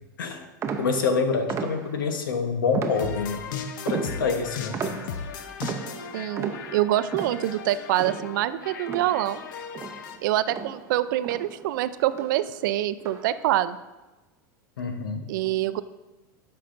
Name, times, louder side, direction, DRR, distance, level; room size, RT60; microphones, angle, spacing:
sound 1, 0.6-2.2 2.7-3.5 3.9-9.5 9.7-11.8 12.1-12.5 13.0-13.5, right 6 dB, 25° right, 0.7 m, -35 dB
voice 1, 0.8-3.5 3.8-5.0 14.8-15.3, left 4 dB, 90° left, 7 dB, 1.0 m, -27 dB
sound 2, 2.9-10.2, left 6 dB, 70° left, 0.7 m, -37 dB
voice 2, 6.1-9.4 10.2-13.8 15.3-15.8, right 13 dB, 70° right, 14 dB, 0.4 m, -25 dB
12.5 x 5.7 x 2.6 m, 1.1 s
hypercardioid pair, 115°, 11 cm